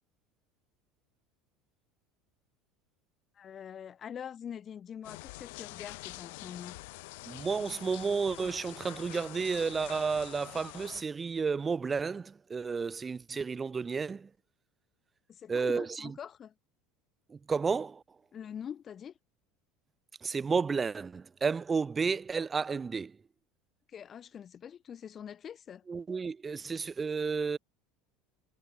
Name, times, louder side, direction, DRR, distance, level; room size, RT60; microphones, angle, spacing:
voice 1, 3.4-6.8 15.3-16.5 18.3-19.1 23.9-25.8, left 8 dB, 30° left, 1.8 m, -44 dB
sound 1, 5.0-11.0, left 24 dB, 80° left, 2.2 m, -46 dB
voice 2, 7.2-14.3 15.5-16.1 17.3-18.0 20.2-23.1 25.9-27.6, right 5 dB, 20° right, 2.7 m, -32 dB
supercardioid pair, 130°, 0 cm